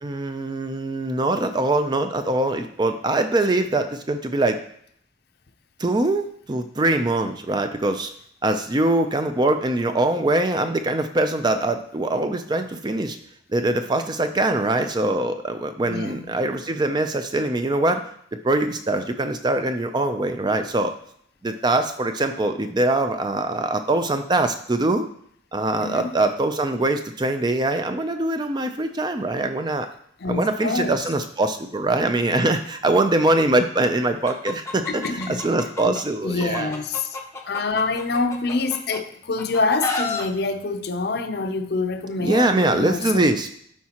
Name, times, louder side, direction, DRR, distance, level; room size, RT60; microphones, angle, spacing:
voice 1, 0.0-4.6 5.8-8.1 8.4-13.2 13.5-18.0 18.3-20.9 21.4-25.1 25.5-29.9 30.3-36.7 42.2-43.5, right 2 dB, 25° right, 0.4 m, -23 dB
voice 2, 15.8-16.3 25.7-26.2 30.2-31.1 34.9-35.4 35.8-37.2 37.4-43.3, left 3 dB, 55° left, 0.6 m, -26 dB
Chicken rooster, 34.3-36.0 36.4-39.0 39.4-40.2, left 3 dB, 15° left, 0.7 m, -30 dB
11.5 x 4.7 x 2.9 m
head